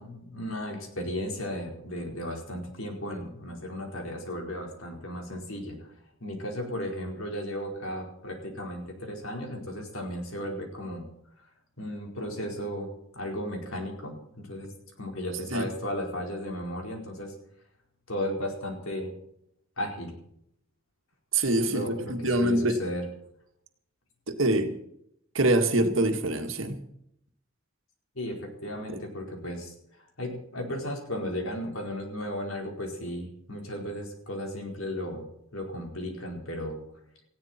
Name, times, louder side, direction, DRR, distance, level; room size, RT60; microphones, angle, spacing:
voice 1, 0.0-5.9 6.2-11.0 11.8-12.9 13.1-14.7 15.0-17.3 18.1-19.1 19.8-20.1 21.5-23.0 28.1-29.7 30.2-35.3 35.5-36.8, equal, 80° left, 1 dB, 4.6 m, -35 dB
voice 2, 21.3-22.8 24.3-24.7 25.3-26.8 28.9-29.0, right 2 dB, 70° right, 6 dB, 2.0 m, -25 dB
19.0 x 15.5 x 4.5 m, 0.73 s
head